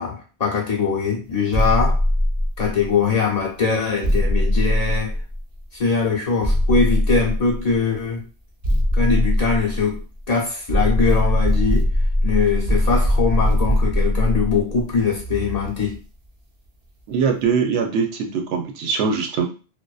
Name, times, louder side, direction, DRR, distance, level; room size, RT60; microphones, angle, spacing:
voice 1, 0.0-2.0 2.6-5.1 5.7-8.3 8.9-11.9 12.2-16.0, left 5 dB, 45° left, -3 dB, 0.6 m, -22 dB
sound 1, 1.5-3.0 4.0-5.6 6.4-7.8 8.6-10.2 10.7-16.0, equal, 45° right, 0.5 m, -21 dB
voice 2, 17.1-19.4, right 5 dB, 85° right, 3 dB, 0.8 m, -22 dB
2.5 x 2.1 x 2.3 m, 0.35 s
omnidirectional pair, 1.1 m